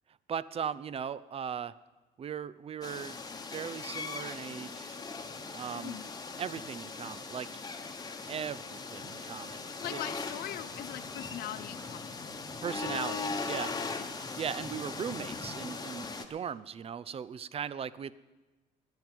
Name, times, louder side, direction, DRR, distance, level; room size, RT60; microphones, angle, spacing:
voice 1, 0.3-1.7 2.2-3.2 3.5-5.0 5.5-6.0 6.4-7.6 8.3-9.6 9.9-10.0 12.6-13.8 14.3-18.1, right 7 dB, 35° right, 18 dB, 0.5 m, -38 dB
sound 1, 2.8-16.2, left 4 dB, 20° left, 1.1 m, -39 dB
voice 2, 5.7-6.1 9.8-12.2 14.0-14.1, left 13 dB, 65° left, 13 dB, 0.5 m, -41 dB
10.5 x 9.6 x 9.1 m, 1.2 s
cardioid pair, 110°, 17 cm